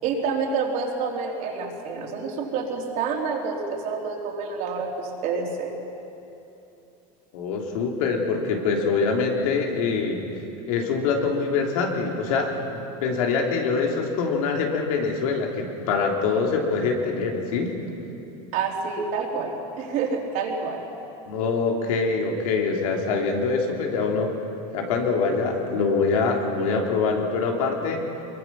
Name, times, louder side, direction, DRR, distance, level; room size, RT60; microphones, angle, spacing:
voice 1, 0.0-5.7 18.5-20.8, right 5 dB, 55° right, 0 dB, 3.7 m, -28 dB
voice 2, 7.3-10.2 10.7-17.7 21.3-24.3 24.7-28.0, left 4 dB, 85° left, 1 dB, 3.3 m, -24 dB
23.5 x 23.0 x 6.0 m, 2.8 s
supercardioid pair, 150°, 17 cm